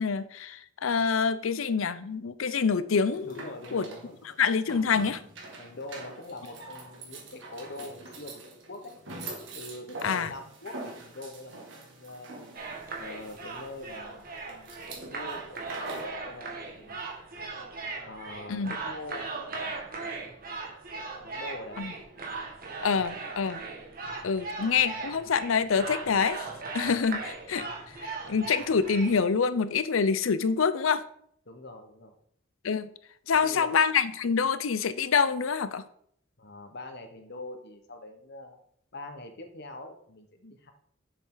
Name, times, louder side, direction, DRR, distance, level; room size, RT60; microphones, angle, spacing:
voice 1, 0.0-3.9 4.4-5.2 10.0-10.3 18.5-18.8 21.8-21.9 22.8-23.6 24.2-26.5 26.7-31.0 32.6-32.9 33.3-35.8, left 5 dB, 85° left, 14 dB, 0.6 m, -26 dB
sound 1, 2.9-16.2, right 2 dB, 65° right, 2.1 m, -44 dB
voice 2, 3.2-4.2 4.7-4.8 5.6-8.4 8.7-8.9 9.5-12.5 13.0-14.8 15.1-17.0 18.0-19.8 21.2-21.9 22.4-22.5 31.4-32.1 33.3-33.8 36.4-38.6 38.9-40.7, left 2 dB, 55° left, 6 dB, 1.3 m, -43 dB
sound 2, 12.5-29.1, right 3 dB, 45° right, 1.8 m, -38 dB
7.6 x 6.7 x 3.9 m, 0.65 s
head